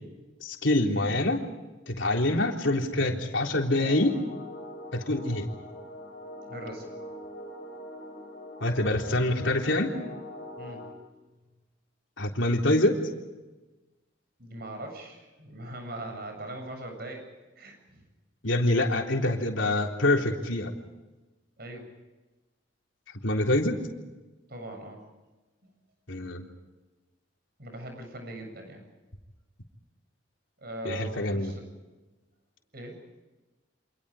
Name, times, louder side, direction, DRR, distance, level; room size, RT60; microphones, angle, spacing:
voice 1, 0.4-1.5 1.9-4.2 4.9-5.5 8.6-9.9 12.2-13.0 18.4-20.7 23.2-23.8 26.1-26.4 30.8-31.5, left 1 dB, 75° left, 1 dB, 3.7 m, -25 dB
sound 1, 3.8-10.9, left 1 dB, 50° left, 5.8 m, -42 dB
voice 2, 6.5-6.9 10.6-10.9 14.4-17.3 17.6-18.0 21.6-21.9 24.5-25.0 27.6-28.8 30.6-31.6 32.7-33.0, right 1 dB, 55° right, 4 dB, 7.4 m, -40 dB
29.0 x 27.0 x 5.1 m, 1.1 s
head